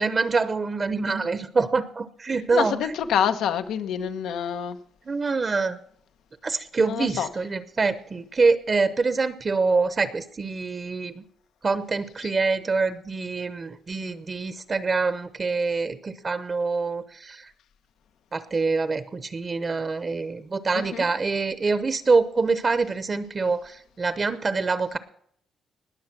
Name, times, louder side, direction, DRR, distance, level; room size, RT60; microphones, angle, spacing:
voice 1, 0.0-2.8 5.1-5.8 6.4-11.2 11.6-17.5 18.3-25.0, right 4 dB, 30° right, 13 dB, 0.8 m, -25 dB
voice 2, 2.5-4.8 6.8-7.3 12.2-12.3 20.7-21.1, left 8 dB, 90° left, 9 dB, 1.1 m, -27 dB
20.0 x 6.9 x 5.9 m, 0.64 s
cardioid pair, 125°, 0 cm